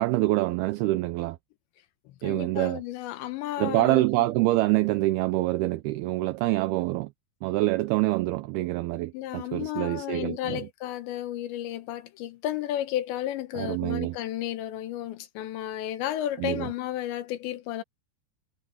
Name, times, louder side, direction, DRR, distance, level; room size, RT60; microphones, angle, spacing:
voice 1, 0.0-1.4 2.2-2.8 3.6-7.1 7.4-10.7 13.5-14.2 16.4-16.7, right 18 dB, 80° right, 2.3 m, -26 dB
voice 2, 2.2-4.0 9.1-17.8, left 13 dB, 85° left, 3.5 m, -33 dB
omnidirectional pair, 5.0 m